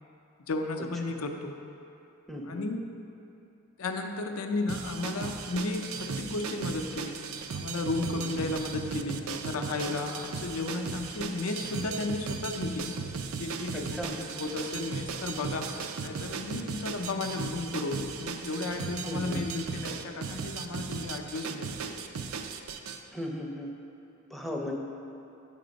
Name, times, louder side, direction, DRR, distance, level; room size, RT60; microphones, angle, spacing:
voice 1, 0.5-1.5 2.5-2.8 3.8-7.2 7.5-12.9 13.4-15.7 16.0-22.0, left 2 dB, 75° left, 4 dB, 0.5 m, -34 dB
voice 2, 2.3-2.6 8.1-8.2 13.7-14.2 19.1-19.4 23.1-23.7 24.3-24.8, left 1 dB, ahead, -1 dB, 0.5 m, -36 dB
sound 1, 4.7-23.0, right 5 dB, 70° right, 0.4 m, -37 dB
8.5 x 3.6 x 5.1 m, 2.8 s
head